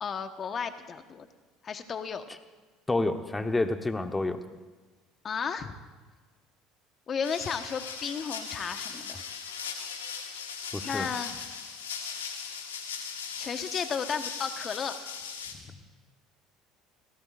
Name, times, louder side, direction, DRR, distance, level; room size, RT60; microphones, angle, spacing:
voice 1, 0.0-1.3 1.6-2.2 5.2-5.7 7.1-9.2 10.8-11.4 11.8-12.2 13.4-15.0 15.6-15.8, left 6 dB, 40° left, 8 dB, 1.3 m, -34 dB
voice 2, 2.9-4.4 10.7-11.1, left 2 dB, 15° left, 7 dB, 1.1 m, -28 dB
sound 1, 7.2-15.5, left 6 dB, 90° left, 1.5 m, -39 dB
27.5 x 17.5 x 2.6 m, 1.3 s
hypercardioid pair, 70°, 0 cm